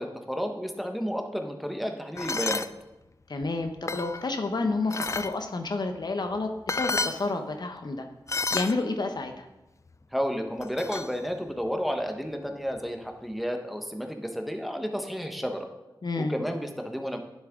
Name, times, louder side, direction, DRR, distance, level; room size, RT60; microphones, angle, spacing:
voice 1, 0.0-2.7 10.1-15.7 16.2-17.2, equal, ahead, 3 dB, 1.2 m, -31 dB
sound 1, 2.2-2.7 3.4-4.2 4.9-5.3 6.3-6.4 6.7-7.2 8.3-8.7 10.6-11.1, left 3 dB, 35° left, 0.5 m, -30 dB
voice 2, 3.3-8.1 8.5-9.5 16.0-16.3, left 3 dB, 55° left, 6 dB, 0.9 m, -30 dB
10.0 x 7.5 x 3.7 m, 0.98 s
cardioid pair, 60°, 9 cm